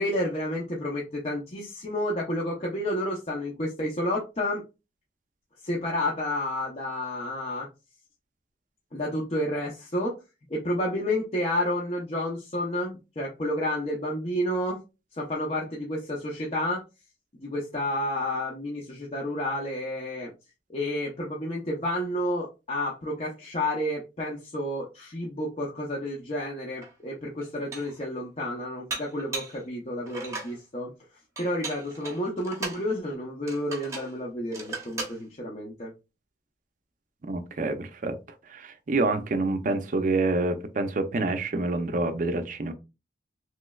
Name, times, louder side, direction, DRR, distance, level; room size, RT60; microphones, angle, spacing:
voice 1, 0.0-4.6 5.6-7.7 8.9-10.2 10.5-14.8 15.2-16.8 17.4-20.3 20.7-30.9 31.4-35.9, left 1 dB, 35° left, 0.6 m, -30 dB
Dishes pots and pans, 26.8-26.9 27.4-28.0 28.9-29.6 30.1-30.6 31.4-32.8 33.5-34.1 34.5-35.2, right 3 dB, 20° right, 0.8 m, -37 dB
voice 2, 37.2-38.1 38.5-42.7, right 2 dB, 45° right, 0.5 m, -27 dB
3.1 x 3.1 x 2.3 m
head